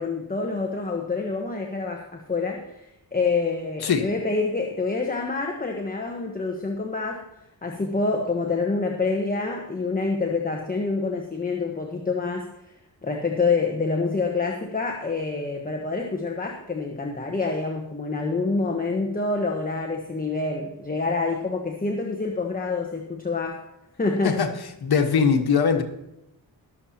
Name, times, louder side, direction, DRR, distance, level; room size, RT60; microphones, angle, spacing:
voice 1, 0.0-2.7 3.1-7.2 7.6-12.5 13.0-23.6 24.0-24.4, left 3 dB, 20° left, 1.2 m, -27 dB
voice 2, 24.8-25.8, left 6 dB, 70° left, 1.5 m, -21 dB
21.5 x 7.5 x 2.9 m
cardioid pair, 80°, 40 cm